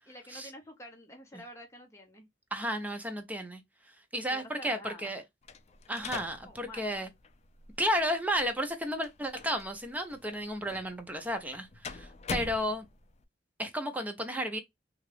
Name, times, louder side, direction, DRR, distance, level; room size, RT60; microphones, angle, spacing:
voice 1, 0.1-2.3 4.3-5.2 6.5-7.0, left 1 dB, 15° left, 0.9 m, -49 dB
voice 2, 2.5-3.6 4.1-5.2 5.9-7.1 7.8-12.9 13.6-14.6, equal, 10° right, 0.6 m, -33 dB
sound 1, 5.4-13.2, left 4 dB, 35° left, 0.4 m, -45 dB
2.8 x 2.4 x 3.2 m
head